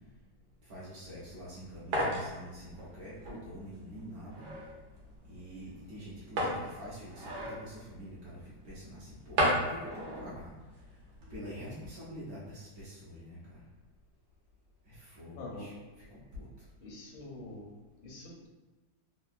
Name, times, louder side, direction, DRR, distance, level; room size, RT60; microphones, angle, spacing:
voice 1, 0.7-4.4 5.3-10.5 11.3-13.4 14.9-15.7 16.1-16.5, equal, 65° right, -7 dB, 1.0 m, -46 dB
sound 1, 1.0-11.5, equal, 90° right, 1.4 m, -37 dB
voice 2, 15.4-15.7 16.8-17.7 18.0-18.5, left 2 dB, 85° left, -2 dB, 1.4 m, -45 dB
3.5 x 2.2 x 2.4 m, 1.2 s
omnidirectional pair, 2.1 m